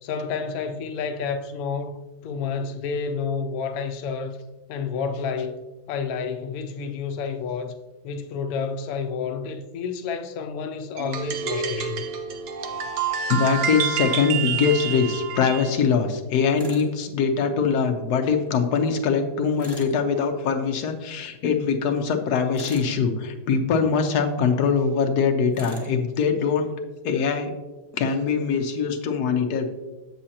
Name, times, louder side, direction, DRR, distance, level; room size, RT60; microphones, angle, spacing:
voice 1, 0.0-4.4 4.7-7.8 8.0-12.0, left 5 dB, 85° left, 0.8 m, -30 dB
sound 1, 11.0-15.7, right 7 dB, 65° right, 1.0 m, -28 dB
voice 2, 13.3-26.7 27.0-27.5 27.9-29.7, left 6 dB, 65° left, 1.1 m, -23 dB
Tools, 16.6-16.9 19.6-20.0 22.5-23.0 25.5-25.9, right 1 dB, 20° right, 0.6 m, -39 dB
7.5 x 7.3 x 2.8 m
omnidirectional pair, 2.1 m